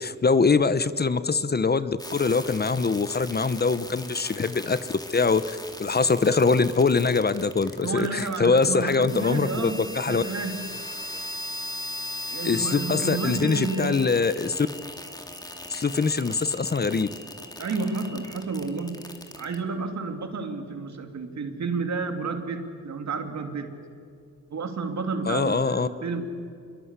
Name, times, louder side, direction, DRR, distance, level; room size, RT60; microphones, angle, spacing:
voice 1, 0.0-4.8 5.1-10.2 12.4-14.7 15.7-17.1 25.3-25.9, left 4 dB, 35° left, 14 dB, 0.9 m, -23 dB
sound 1, 2.0-19.6, left 1 dB, 15° left, 2.5 m, -39 dB
voice 2, 7.8-10.7 12.3-14.1 17.6-23.8 24.5-26.4, right 4 dB, 70° right, 6 dB, 2.8 m, -31 dB
27.5 x 22.5 x 8.3 m, 2.4 s
cardioid pair, 95°, 29 cm